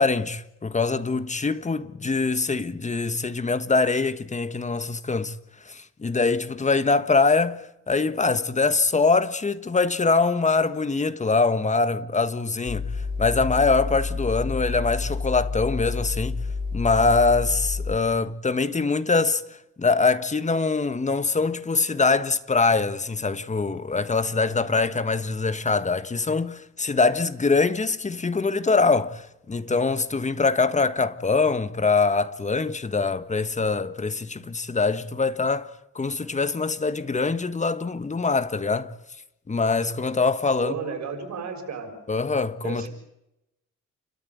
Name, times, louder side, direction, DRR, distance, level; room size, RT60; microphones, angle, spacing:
voice 1, 0.0-5.3 5.6-16.4 16.7-35.7 35.9-38.9 39.5-40.8 42.1-42.9, left 4 dB, 25° left, 1.4 m, -23 dB
sound 1, 12.7-18.0, left 4 dB, 60° left, 7.6 m, -29 dB
voice 2, 40.6-41.9 42.6-42.9, right 6 dB, 65° right, 6.6 m, -33 dB
29.5 x 13.5 x 9.4 m
cardioid pair, 90°, 30 cm